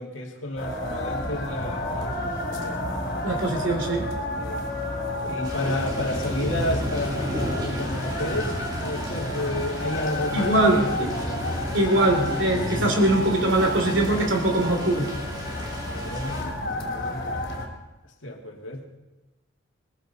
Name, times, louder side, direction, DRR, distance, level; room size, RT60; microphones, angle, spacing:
voice 1, 0.0-2.9 3.4-3.9 4.4-4.7 5.2-10.9 11.7-12.0 15.8-16.6 16.8-17.2 18.2-18.9, left 1 dB, 70° left, 1 dB, 2.2 m, -31 dB
sound 1, 0.6-17.7, left 1 dB, 50° left, 3.3 m, -31 dB
voice 2, 3.2-4.1 10.3-11.1 11.7-15.1, right 1 dB, 65° right, 3 dB, 2.8 m, -22 dB
sound 2, 5.4-16.4, equal, 20° right, 2.6 m, -34 dB
21.0 x 15.0 x 4.1 m, 1.1 s
head